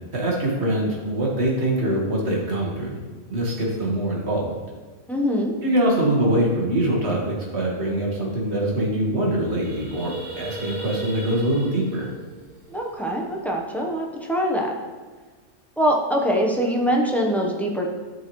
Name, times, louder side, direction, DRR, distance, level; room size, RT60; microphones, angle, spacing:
voice 1, 0.1-3.0 3.3-4.6 5.6-12.1, right 1 dB, 55° right, -3 dB, 1.9 m, -23 dB
voice 2, 5.1-5.5 12.7-14.7 15.8-17.9, equal, ahead, -1 dB, 0.8 m, -23 dB
sound 1, 9.3-13.5, right 2 dB, 70° right, 2.1 m, -38 dB
12.5 x 4.7 x 3.1 m, 1.4 s
omnidirectional pair, 1.3 m